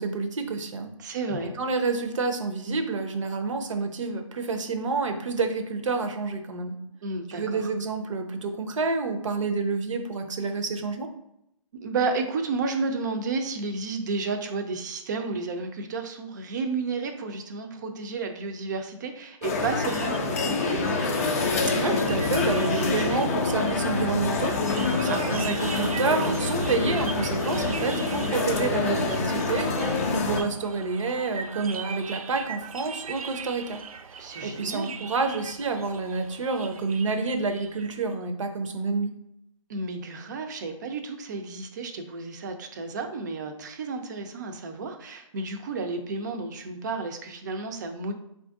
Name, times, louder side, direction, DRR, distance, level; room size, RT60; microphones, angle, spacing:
voice 1, 0.0-1.2 1.6-6.8 7.3-11.1 21.6-24.6 24.9-33.8 34.1-39.1, right 4 dB, 60° right, 6 dB, 0.8 m, -29 dB
voice 2, 1.0-1.5 7.0-7.7 11.7-21.0 25.1-25.5 34.2-35.0 39.7-48.1, right 4 dB, 35° right, 5 dB, 0.5 m, -32 dB
sound 1, 19.4-30.4, left 3 dB, 25° left, 0.4 m, -26 dB
sound 2, 19.9-38.1, right 6 dB, 85° right, 0.4 m, -41 dB
4.3 x 2.6 x 3.5 m, 0.81 s
hypercardioid pair, 160°, 18 cm